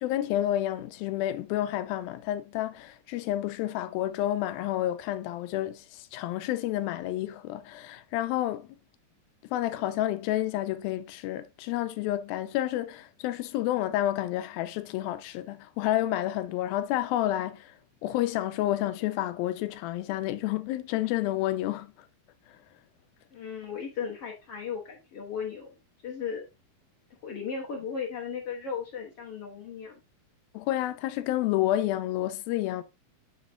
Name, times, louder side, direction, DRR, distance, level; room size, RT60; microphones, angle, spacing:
voice 1, 0.0-8.8 9.5-17.7 18.0-21.9 30.5-32.8, left 14 dB, 90° left, 2.5 m, -30 dB
voice 2, 23.3-25.7 26.0-26.5 27.2-30.0, left 6 dB, 60° left, 1.6 m, -36 dB
8.5 x 4.1 x 3.9 m
omnidirectional pair, 4.2 m